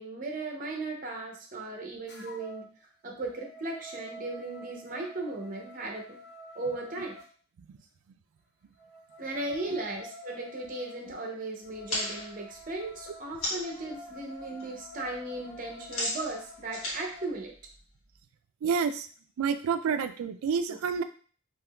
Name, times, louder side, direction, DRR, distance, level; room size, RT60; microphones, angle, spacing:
voice 1, 0.0-2.7 3.0-6.2 6.5-7.1 9.2-17.5, right 2 dB, 40° right, 1 dB, 0.6 m, -37 dB
sound 1, 2.1-2.7 3.1-7.3 8.8-17.4, left 1 dB, 55° left, 0.7 m, -48 dB
sound 2, 11.7-13.8 14.2-14.6 14.9-18.2, left 1 dB, 85° left, 1.3 m, -36 dB
voice 2, 18.6-19.1 19.4-21.0, right 6 dB, 90° right, 10 dB, 0.3 m, -29 dB
3.6 x 2.9 x 2.2 m, 0.42 s
head